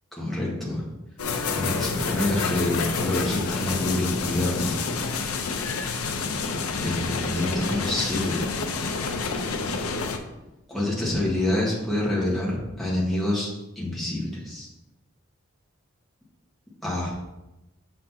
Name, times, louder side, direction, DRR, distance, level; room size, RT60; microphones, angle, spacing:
voice 1, 0.2-0.9 1.5-4.7 6.8-8.4 10.7-13.5 13.7-14.7 16.8-17.1, left 1 dB, ahead, -7 dB, 1.5 m, -27 dB
sound 1, 1.2-10.2, left 4 dB, 85° left, 0.6 m, -28 dB
6.4 x 5.9 x 2.8 m, 0.98 s
head